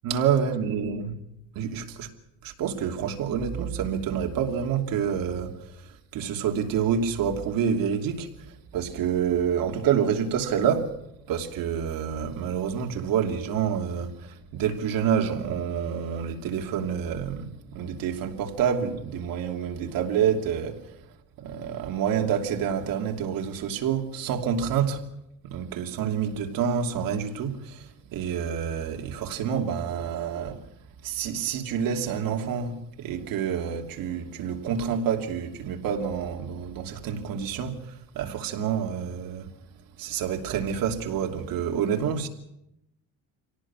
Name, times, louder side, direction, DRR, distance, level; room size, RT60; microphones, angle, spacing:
voice 1, 0.0-1.1 1.5-2.1 2.4-11.0 11.3-20.8 21.4-25.0 25.4-30.6 31.0-39.5 40.0-42.3, right 7 dB, 85° right, 2.9 m, -28 dB
26.5 x 18.0 x 6.2 m
cardioid pair, 175°, 34 cm